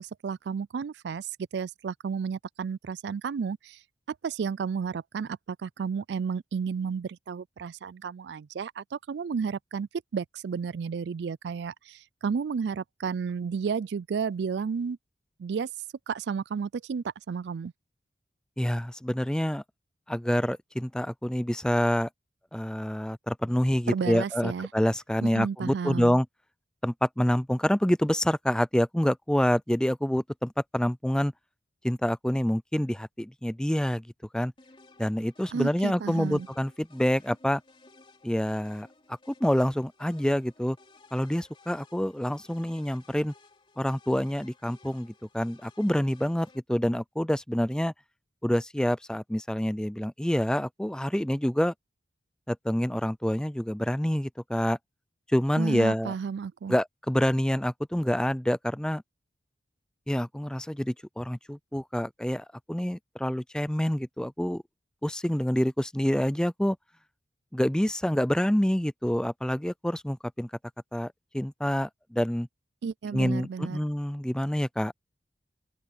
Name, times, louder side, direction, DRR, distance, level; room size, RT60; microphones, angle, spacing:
voice 1, 0.0-3.8 4.1-15.0 15.4-15.7 16.1-17.7 23.9-24.7 25.2-26.2 35.5-36.5 55.6-56.8 72.8-73.8, right 6 dB, 65° right, 0.4 m, -32 dB
voice 2, 18.6-19.6 20.1-22.1 22.5-26.3 26.8-31.3 31.8-34.1 34.3-34.5 35.0-37.6 38.2-38.9 39.3-40.8 41.1-43.3 43.8-47.9 48.4-51.7 52.5-54.8 55.3-56.2 56.7-59.0 60.1-64.6 65.0-66.8 67.5-70.5 70.9-72.5 73.1-74.9, equal, 5° left, 0.4 m, -27 dB
sound 1, 34.6-46.6, left 3 dB, 30° left, 3.1 m, -57 dB
open air
head